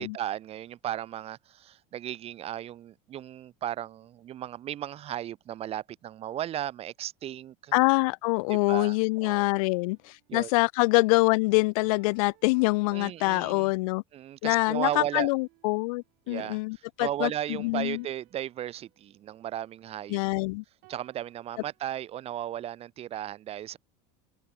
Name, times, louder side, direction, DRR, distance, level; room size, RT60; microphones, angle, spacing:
voice 1, 0.0-7.7 8.5-9.0 9.2-9.5 10.3-10.5 12.9-13.7 14.1-15.3 16.3-20.2 20.9-23.8, right 11 dB, 35° right, 0.8 m, -35 dB
voice 2, 7.7-14.0 14.4-18.0 20.1-20.6, left 25 dB, 75° left, 0.5 m, -25 dB
sound 1, 9.1-10.4 11.8-13.4 14.8-16.3 17.8-20.2 20.8-22.1, right 29 dB, 65° right, 6.0 m, -61 dB
open air
supercardioid pair, 130°, 18 cm